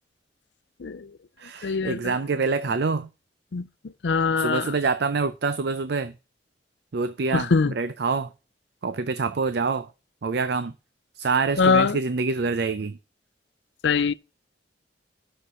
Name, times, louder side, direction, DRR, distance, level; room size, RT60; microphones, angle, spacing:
voice 1, 0.8-1.2 1.6-2.2 3.5-4.8 7.3-7.7 11.6-12.0 13.8-14.1, left 5 dB, 75° left, 0.5 m, -23 dB
voice 2, 1.4-3.1 4.4-6.1 6.9-7.5 7.8-8.3 8.8-9.9 10.2-10.7 11.2-13.0, right 4 dB, 65° right, 0.5 m, -26 dB
6.8 x 6.6 x 7.3 m
head